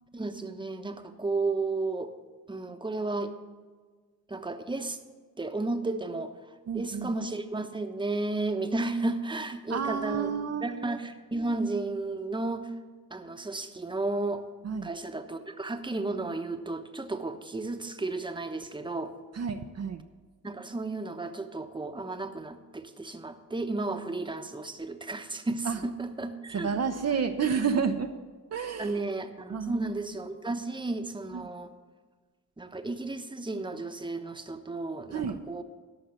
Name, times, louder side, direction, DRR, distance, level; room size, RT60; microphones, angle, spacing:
voice 1, 0.1-2.1 2.5-3.3 4.3-5.0 5.4-6.3 6.7-10.3 10.6-12.7 13.1-14.4 14.8-19.1 20.4-26.9 28.8-31.7 32.6-35.6, right 2 dB, 15° right, 7 dB, 1.0 m, -33 dB
voice 2, 6.7-7.1 9.7-10.8 14.6-14.9 19.3-20.0 25.7-25.8 26.5-28.1 28.5-29.0 29.5-29.9 31.3-31.4 35.1-35.4, right 6 dB, 50° right, 5 dB, 0.7 m, -30 dB
13.5 x 5.6 x 7.0 m, 1.4 s
supercardioid pair, 55°, 34 cm